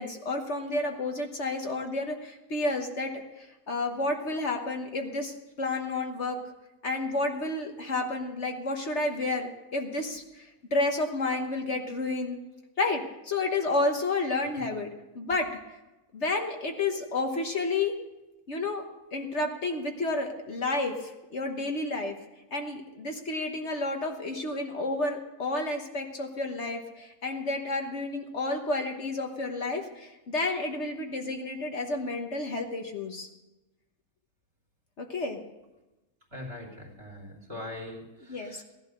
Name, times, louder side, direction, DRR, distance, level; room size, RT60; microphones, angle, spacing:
voice 1, 0.0-6.4 6.8-12.4 12.8-15.5 16.1-17.9 18.5-18.8 19.1-22.2 22.5-33.3 35.0-35.4 38.3-38.6, left 2 dB, 50° left, 3 dB, 1.5 m, -31 dB
voice 2, 36.3-38.6, left 1 dB, 40° right, 1 dB, 3.3 m, -42 dB
16.5 x 11.5 x 6.6 m, 1.0 s
omnidirectional pair, 1.5 m